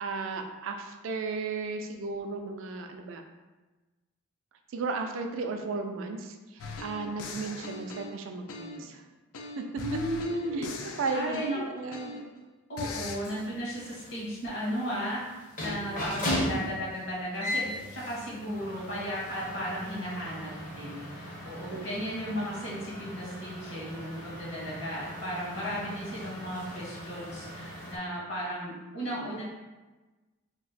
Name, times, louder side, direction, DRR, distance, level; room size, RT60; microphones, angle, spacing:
voice 1, 0.0-3.2 4.7-9.0 9.6-9.7 10.4-10.7 11.0-12.0 21.7-21.8, right 4 dB, 65° right, 5 dB, 0.3 m, -35 dB
sound 1, 6.6-8.9 9.3-12.4 12.8-13.2, left 3 dB, 85° left, 0.4 m, -40 dB
voice 2, 9.7-12.1 12.7-29.4, equal, 55° left, -6 dB, 1.2 m, -35 dB
sound 2, 13.1-28.0, left 1 dB, 40° left, 0.7 m, -38 dB
2.9 x 2.0 x 4.0 m, 1.2 s
head